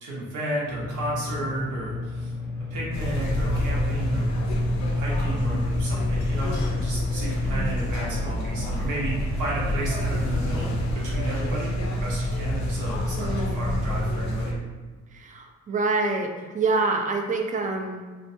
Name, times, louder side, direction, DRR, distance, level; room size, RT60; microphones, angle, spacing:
voice 1, 0.0-2.3 2.7-4.3 4.9-10.7 10.9-14.6, right 1 dB, 90° right, -5 dB, 0.9 m, -33 dB
sound 1, 0.6-9.8, left 3 dB, 10° left, 0.7 m, -33 dB
sound 2, 2.9-14.5, left 1 dB, 70° left, 0.5 m, -27 dB
voice 2, 7.4-7.7 13.2-13.6 15.1-18.1, right 3 dB, 25° right, 3 dB, 0.3 m, -27 dB
2.5 x 2.2 x 2.6 m, 1.4 s
cardioid pair, 90°, 30 cm